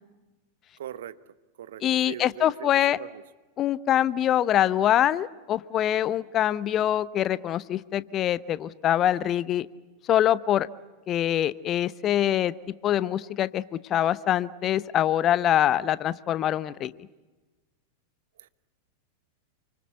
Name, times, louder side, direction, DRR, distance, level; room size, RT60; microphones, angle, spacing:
voice 1, 0.8-1.2 1.6-3.2 18.4-18.5, right 10 dB, 60° right, 14 dB, 1.1 m, -40 dB
voice 2, 1.8-3.0 3.6-9.7 10.1-10.7 11.1-12.5 12.8-16.9, left 11 dB, 30° left, 17 dB, 0.8 m, -24 dB
29.0 x 25.0 x 8.1 m, 1.2 s
figure-of-eight pair, 90°, 0 cm